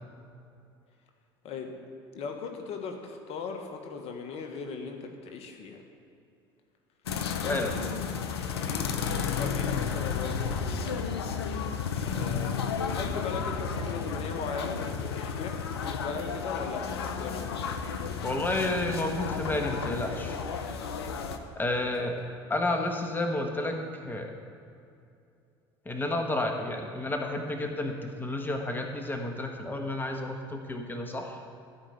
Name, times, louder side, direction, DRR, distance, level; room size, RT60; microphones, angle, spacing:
voice 1, 2.1-5.8 7.2-7.8 8.5-9.1 9.4-11.2 12.1-17.4 21.7-22.1, left 5 dB, 50° left, 4 dB, 1.5 m, -38 dB
sound 1, 7.1-21.4, left 6 dB, 80° left, 0.8 m, -32 dB
voice 2, 18.2-20.4 21.5-22.2 22.5-24.3 25.8-31.4, left 2 dB, 15° left, 3 dB, 1.4 m, -31 dB
14.5 x 5.2 x 8.0 m, 2.5 s
hypercardioid pair, 70°, 13 cm